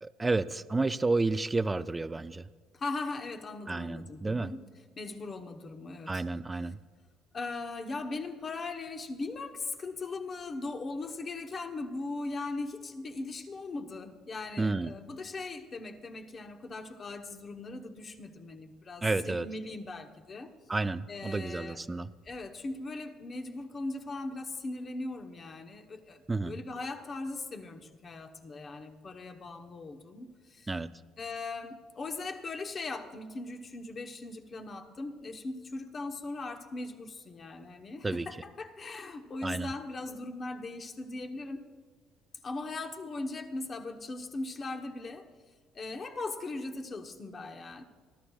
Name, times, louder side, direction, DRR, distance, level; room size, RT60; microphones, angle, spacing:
voice 1, 0.0-2.5 3.7-4.5 6.1-6.8 14.6-14.9 19.0-19.5 20.7-22.1 26.3-26.6 30.7-31.0 38.0-38.3 39.4-39.7, right 3 dB, 15° right, 13 dB, 0.4 m, -31 dB
voice 2, 2.7-4.6 5.0-6.2 7.3-20.5 21.1-21.8 22.3-30.7 31.2-41.6 42.4-45.3 45.7-47.8, left 3 dB, 30° left, 6 dB, 1.0 m, -39 dB
29.5 x 13.0 x 2.4 m, 1.5 s
cardioid pair, 155°, 0 cm